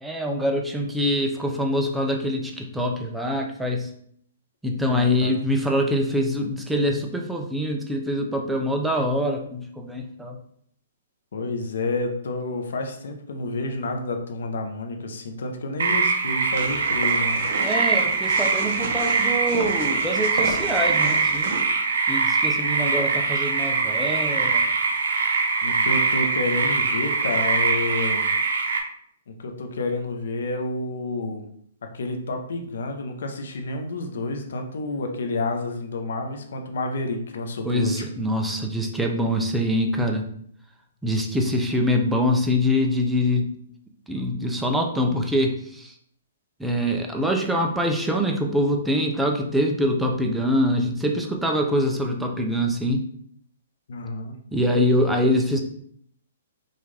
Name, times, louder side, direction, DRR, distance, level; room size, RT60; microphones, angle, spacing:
voice 1, 0.0-3.9 4.6-10.4 17.6-21.5 22.1-24.6 37.6-40.3 41.0-43.5 44.1-45.9 46.6-53.0 54.5-55.6, equal, 5° right, 1 dB, 0.5 m, -24 dB
voice 2, 4.8-5.3 11.3-17.4 25.6-28.3 29.3-31.5 31.9-38.1 53.9-54.3, left 2 dB, 75° left, 4 dB, 0.8 m, -29 dB
sound 1, 15.8-28.8, right 4 dB, 75° right, 0.7 m, -23 dB
sound 2, 16.5-21.6, right 3 dB, 45° right, 0.9 m, -34 dB
5.5 x 2.5 x 3.3 m, 0.65 s
hypercardioid pair, 165°, 0 cm